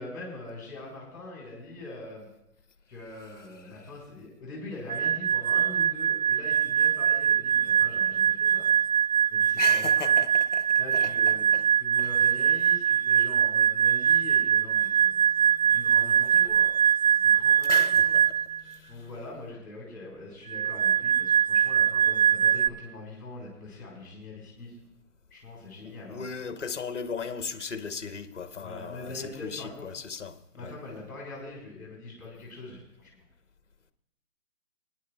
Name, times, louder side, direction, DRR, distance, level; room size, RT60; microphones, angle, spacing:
voice 1, 0.0-2.3 2.9-8.7 9.3-10.1 10.8-11.5 11.8-15.2 15.6-16.7 17.1-18.2 18.9-24.7 25.3-26.2 28.6-29.9 30.5-33.1, left 2 dB, 5° left, 3.2 m, -42 dB
sound 1, 4.9-18.6 20.5-22.7, right 8 dB, 60° right, 0.5 m, -23 dB
voice 2, 9.6-11.7 12.0-12.2 15.1-15.8 17.7-19.1 25.8-30.7, left 5 dB, 50° left, 0.9 m, -37 dB
25.5 x 9.7 x 2.3 m
hypercardioid pair, 180°, 47 cm